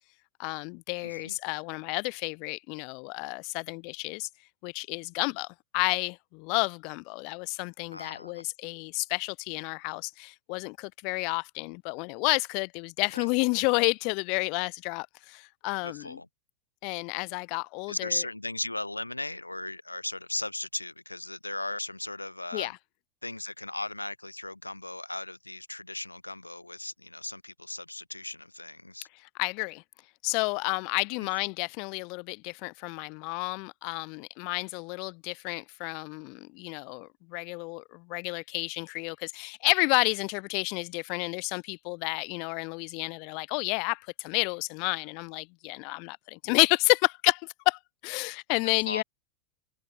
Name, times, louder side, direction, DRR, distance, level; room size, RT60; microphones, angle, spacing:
voice 1, 0.4-4.3 4.6-16.2 16.8-18.2 22.5-22.8 29.1-29.8 30.2-49.0, left 34 dB, 45° left, 4.5 m, -30 dB
voice 2, 1.0-1.4 7.9-8.5 13.1-13.3 15.8-16.3 17.9-22.7 23.2-29.1 48.8-49.0, left 2 dB, 85° left, 5.0 m, -37 dB
figure-of-eight pair, 90°, 0 cm